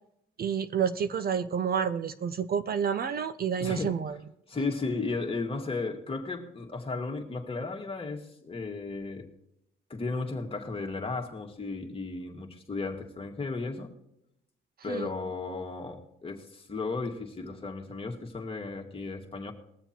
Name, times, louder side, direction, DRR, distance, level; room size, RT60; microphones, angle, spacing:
voice 1, 0.4-4.2 14.9-15.1, right 7 dB, 50° right, 12 dB, 0.7 m, -29 dB
voice 2, 3.6-3.9 4.5-9.3 9.9-13.9 14.8-19.5, left 3 dB, 30° left, 1 dB, 1.9 m, -34 dB
20.5 x 7.0 x 4.4 m, 0.79 s
cardioid pair, 90°, 20 cm